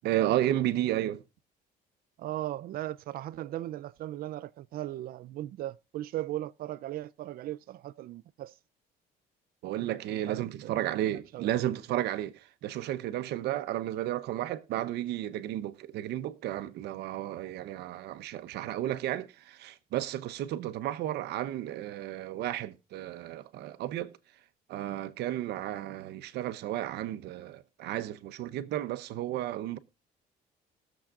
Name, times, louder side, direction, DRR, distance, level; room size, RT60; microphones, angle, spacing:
voice 1, 0.0-1.2 9.6-24.1 24.7-29.8, right 13 dB, 75° right, 0.8 m, -33 dB
voice 2, 2.2-8.5 10.3-10.7 11.1-11.5 20.6-20.7, right 14 dB, 60° right, 0.4 m, -38 dB
21.0 x 7.2 x 2.4 m
cardioid pair, 110°, 17 cm